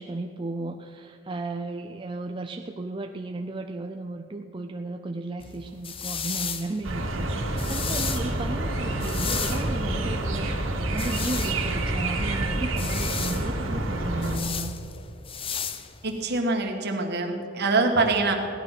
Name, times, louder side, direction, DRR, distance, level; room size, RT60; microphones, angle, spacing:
voice 1, 0.0-14.7, right 2 dB, 25° right, 5 dB, 0.4 m, -34 dB
sound 1, 5.4-16.4, left 7 dB, 25° left, 0.6 m, -35 dB
sound 2, 6.8-14.4, right 1 dB, 75° right, 2.2 m, -28 dB
voice 2, 16.0-18.3, right 3 dB, 55° right, 3 dB, 1.7 m, -24 dB
17.0 x 11.5 x 6.0 m, 2.9 s
head